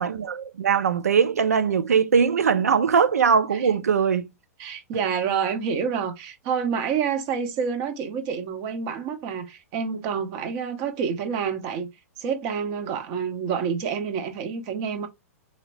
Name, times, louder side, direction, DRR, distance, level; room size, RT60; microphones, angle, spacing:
voice 1, 0.0-4.3, right 6 dB, 80° right, 0.5 m, -21 dB
voice 2, 4.6-11.9 12.2-15.1, right 6 dB, 40° right, 0.8 m, -28 dB
2.9 x 2.8 x 3.1 m
hypercardioid pair, 105°, 8 cm